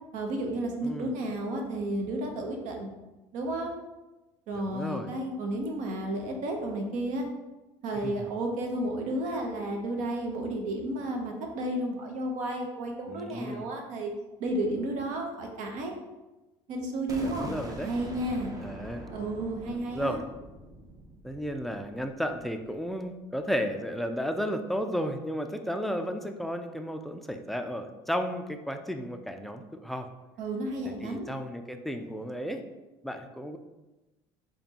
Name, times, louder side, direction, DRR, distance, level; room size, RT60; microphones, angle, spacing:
voice 1, 0.1-2.9 3.3-3.7 4.5-7.3 7.8-14.1 14.4-15.9 16.7-17.5 17.8-18.5 19.1-20.2 30.4-31.3, right 1 dB, 65° right, 2 dB, 0.8 m, -32 dB
voice 2, 4.6-5.1 8.0-8.2 13.1-13.7 17.2-17.9 18.6-19.1 19.9-20.2 21.2-30.1 30.8-32.6 33.0-33.6, equal, ahead, 6 dB, 0.4 m, -33 dB
sound 1, 17.1-22.9, right 1 dB, 25° right, 0.7 m, -44 dB
4.2 x 3.0 x 2.9 m, 1.1 s
supercardioid pair, 90°, 14 cm